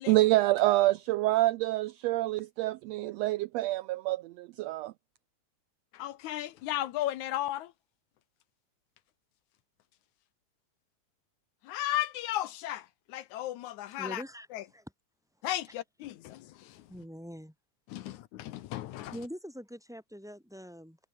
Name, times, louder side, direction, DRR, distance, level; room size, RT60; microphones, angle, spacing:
voice 1, 0.1-4.9, right 17 dB, 80° right, 1.6 m, -27 dB
voice 2, 5.9-7.7 11.7-14.2 14.5-14.6 15.4-16.5 17.9-19.1, left 13 dB, 80° left, 2.3 m, -35 dB
voice 3, 14.0-14.9 15.7-15.8 16.9-17.5 18.0-18.1 19.1-21.0, equal, ahead, 6.9 m, -44 dB
omnidirectional pair, 3.4 m